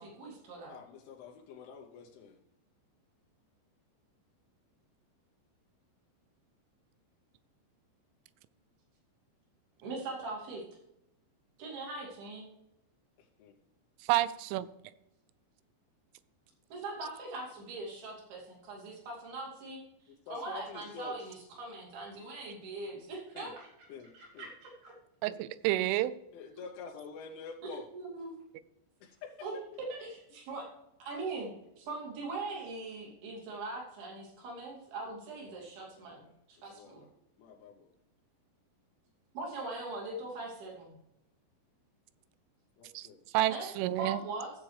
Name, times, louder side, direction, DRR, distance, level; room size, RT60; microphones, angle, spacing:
voice 1, 0.0-0.7 9.8-10.6 11.6-12.5 16.7-19.8 20.3-23.7 24.1-25.0 27.9-28.3 29.4-30.7 31.0-37.1 39.3-41.0 43.5-44.5, right 2 dB, 55° right, -2 dB, 4.3 m, -41 dB
voice 2, 0.7-2.4 13.2-13.6 20.1-21.4 23.3-23.5 23.9-24.5 25.6-25.9 26.3-27.9 29.0-29.8 36.0-37.1 37.4-37.9 42.8-43.2, left 5 dB, 85° left, 1 dB, 3.3 m, -48 dB
voice 3, 14.1-14.7 25.2-26.1 42.9-43.1 43.3-44.2, right 15 dB, 90° right, 16 dB, 3.0 m, -29 dB
15.5 x 7.5 x 3.3 m, 0.87 s
omnidirectional pair, 5.4 m